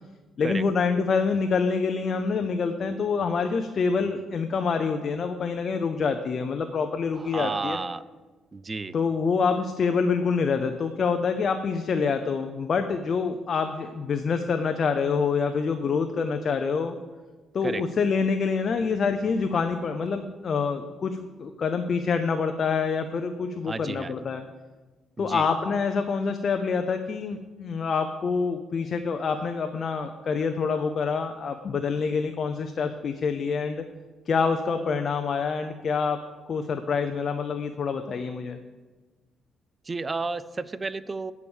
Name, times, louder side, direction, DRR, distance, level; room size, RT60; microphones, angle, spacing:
voice 1, 0.4-7.8 8.9-16.9 17.5-24.4 25.2-33.8 34.3-36.2 36.5-38.6, left 5 dB, 50° left, 7 dB, 0.5 m, -26 dB
voice 2, 7.1-8.0 8.5-9.0 17.6-17.8 23.7-24.2 25.2-25.5 39.8-41.3, right 3 dB, 30° right, 16 dB, 0.4 m, -32 dB
8.5 x 4.7 x 7.1 m, 1.3 s
cardioid pair, 90°, 0 cm